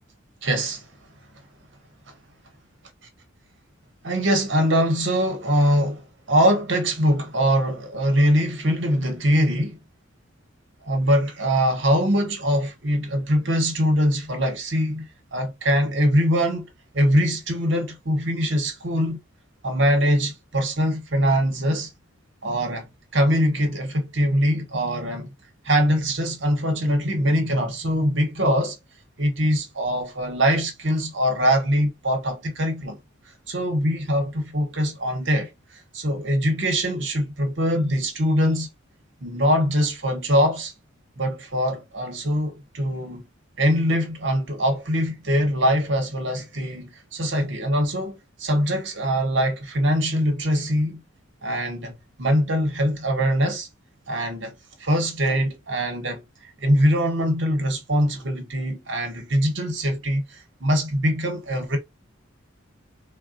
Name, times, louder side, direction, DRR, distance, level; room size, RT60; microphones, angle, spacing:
voice 1, 0.4-0.8 4.0-9.8 10.9-16.7 16.9-19.2 19.6-21.9 22.4-22.9 23.1-25.3 25.6-28.8 29.2-33.0 33.5-38.7 39.2-40.7 41.2-43.2 43.6-51.0 51.4-53.7 54.1-61.8, equal, 55° right, 0.9 m, -23 dB
3.8 x 2.2 x 2.5 m
head